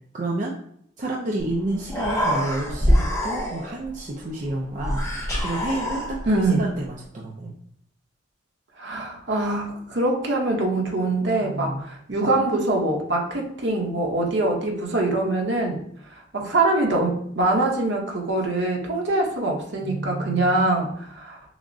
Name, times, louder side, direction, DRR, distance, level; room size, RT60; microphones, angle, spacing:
voice 1, 0.1-0.6 1.0-5.0 5.4-7.6 11.4-11.9 19.8-20.7, right 2 dB, 40° right, -2 dB, 0.4 m, -30 dB
Human voice, 1.5-1.6 1.8-3.9 4.8-6.4, equal, 15° left, 0.9 m, -24 dB
voice 2, 6.3-6.6 8.8-15.8 16.3-21.4, right 2 dB, 65° right, 0 dB, 0.9 m, -23 dB
5.9 x 2.1 x 2.6 m, 0.66 s
head